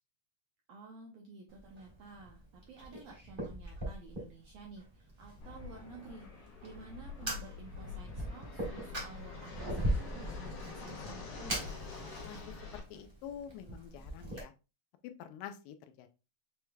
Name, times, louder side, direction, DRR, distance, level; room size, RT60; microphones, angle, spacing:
voice 1, 0.7-11.7, right 3 dB, 80° right, 0 dB, 1.5 m, -52 dB
Fire, 1.5-14.4, right 1 dB, 25° right, 1.3 m, -41 dB
Fixed-wing aircraft airplane, 5.4-12.8, left 5 dB, 65° left, 2.0 m, -46 dB
voice 2, 12.2-14.5 15.2-16.1, left 9 dB, 90° left, 8 dB, 2.3 m, -47 dB
6.6 x 3.1 x 2.3 m, 0.29 s
omnidirectional pair, 3.8 m